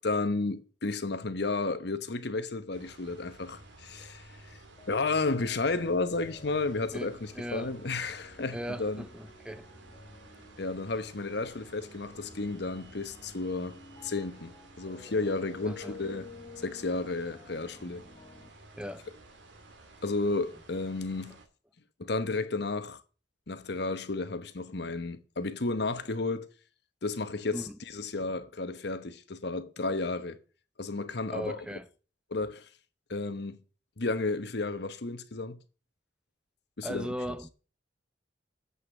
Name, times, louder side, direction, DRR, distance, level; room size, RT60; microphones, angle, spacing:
voice 1, 0.0-4.6 4.9-9.0 10.6-14.5 14.8-16.3 16.6-18.0 20.0-21.4 22.0-23.0 23.5-26.5 27.0-30.4 30.8-31.6 32.3-32.7 33.1-33.6 34.0-35.6 36.8-37.1, left 3 dB, 65° left, 1.0 m, -32 dB
sound 1, 2.7-21.5, right 2 dB, 85° right, 2.2 m, -53 dB
sound 2, 4.8-18.5, left 4 dB, 35° left, 0.9 m, -52 dB
voice 2, 6.9-7.8 8.5-9.7 15.6-16.0 18.8-19.1 27.5-27.8 31.3-31.9 36.8-37.5, equal, 5° right, 0.7 m, -38 dB
8.1 x 5.7 x 7.0 m
head